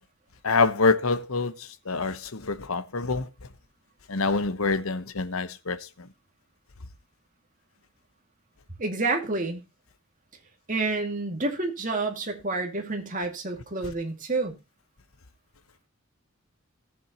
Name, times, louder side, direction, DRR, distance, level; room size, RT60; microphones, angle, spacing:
voice 1, 0.4-1.5 1.9-3.3 4.1-5.8, left 4 dB, 75° left, 1.0 m, -25 dB
voice 2, 8.8-9.6 10.7-14.6, right 3 dB, 35° right, 2.3 m, -29 dB
18.0 x 7.2 x 3.0 m
head